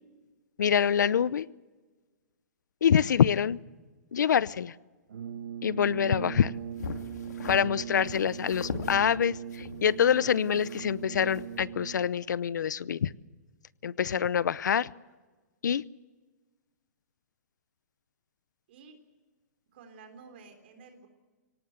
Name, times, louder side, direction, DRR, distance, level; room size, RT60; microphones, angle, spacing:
voice 1, 0.6-1.4 2.8-3.6 4.1-4.7 5.6-6.5 7.5-13.1 13.8-14.9 15.6-15.8, left 8 dB, 90° left, 20 dB, 0.7 m, -25 dB
Brass instrument, 5.1-12.2, right 9 dB, 70° right, 1.4 m, -40 dB
sound 1, 6.8-7.6 8.1-9.0 9.5-11.0 11.3-11.6, left 5 dB, 75° left, 2.9 m, -39 dB
voice 2, 19.7-21.1, right 5 dB, 40° right, 7 dB, 3.5 m, -51 dB
23.5 x 18.0 x 8.0 m, 1.3 s
hypercardioid pair, 175°, 10 cm